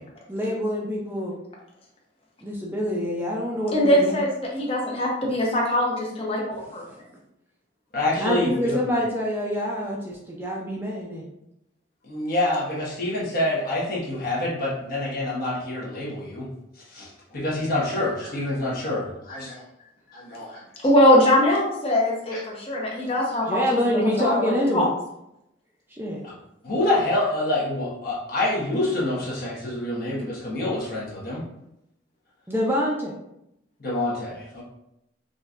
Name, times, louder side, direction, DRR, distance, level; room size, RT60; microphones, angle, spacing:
voice 1, 0.3-1.3 2.4-4.2 6.9-7.0 8.2-11.3 23.0-23.1 23.4-24.9 25.9-26.2 32.5-33.1, equal, 10° right, -3 dB, 0.5 m, -26 dB
voice 2, 3.7-6.8 20.8-23.6 24.2-24.8, left 1 dB, 30° left, -2 dB, 0.9 m, -21 dB
voice 3, 7.9-8.8 12.0-16.5 16.9-19.6 20.1-20.6 22.3-22.4 26.6-31.4 33.8-34.6, left 1 dB, 50° left, -5 dB, 1.4 m, -27 dB
5.2 x 2.7 x 2.5 m, 0.82 s
head